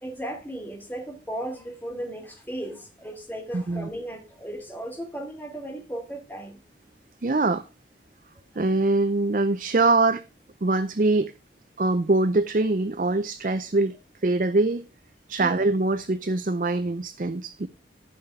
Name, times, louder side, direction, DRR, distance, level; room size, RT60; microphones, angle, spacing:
voice 1, 0.0-6.6 8.3-8.7 15.4-15.6, right 1 dB, 10° left, 2.6 m, -36 dB
voice 2, 3.5-3.9 7.2-7.6 8.6-10.2 10.6-11.3 11.8-14.0 14.2-14.8 15.3-17.7, right 2 dB, 45° right, 0.5 m, -23 dB
13.5 x 6.0 x 4.8 m
head